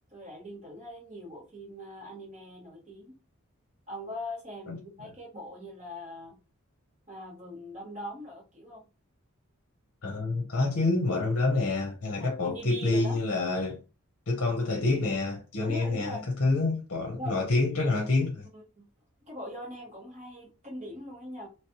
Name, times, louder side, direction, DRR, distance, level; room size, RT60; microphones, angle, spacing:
voice 1, 0.1-3.1 3.9-6.4 7.1-8.8 12.2-13.2 15.6-16.3 17.2-17.3 18.5-18.9 19.3-21.5, left 1 dB, 30° right, 1.8 m, -41 dB
voice 2, 10.0-13.8 14.3-18.5, left 3 dB, 60° left, 0.8 m, -27 dB
3.1 x 3.1 x 3.0 m
head